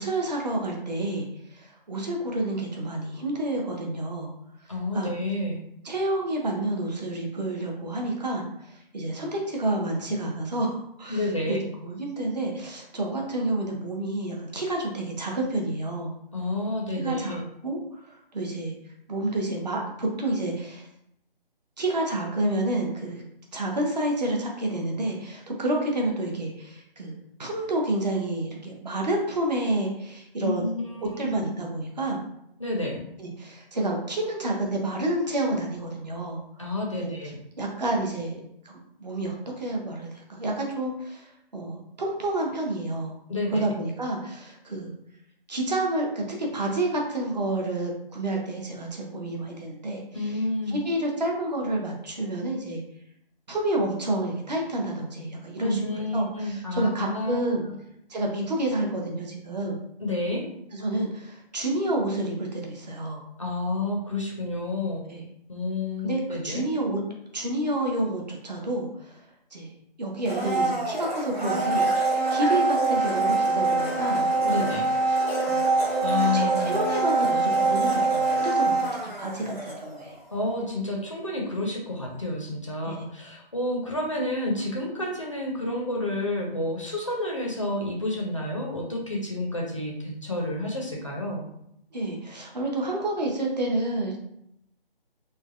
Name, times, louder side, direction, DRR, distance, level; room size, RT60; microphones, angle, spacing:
voice 1, 0.0-4.3 4.9-5.1 5.8-16.1 16.9-17.4 17.6-18.7 19.1-20.9 21.8-23.2 23.5-30.7 31.0-32.2 33.2-36.7 36.9-37.1 37.6-43.2 43.5-45.0 45.5-50.0 50.7-52.8 53.5-55.8 56.1-57.6 58.1-59.8 60.7-63.2 65.1-65.2 66.0-67.0 67.3-69.2 69.5-69.7 70.0-74.3 74.6-75.2 75.4-75.8 76.3-78.9 79.2-80.2 82.9-83.0 91.9-94.2, right 1 dB, 45° right, 0 dB, 0.6 m, -29 dB
voice 2, 4.7-5.6 11.1-11.6 16.3-17.4 30.4-31.4 32.6-33.1 36.6-37.4 43.3-43.6 50.1-50.8 55.6-57.5 60.0-60.5 63.4-65.0 65.5-66.7 74.4-74.9 76.0-76.8 80.3-91.4, left 2 dB, 35° left, -1 dB, 0.4 m, -30 dB
Domestic sounds home sounds, 70.2-80.2 80.5-80.6, right 3 dB, 85° right, 1.3 m, -24 dB
3.2 x 2.1 x 2.4 m, 0.76 s
figure-of-eight pair, 155°, 30 cm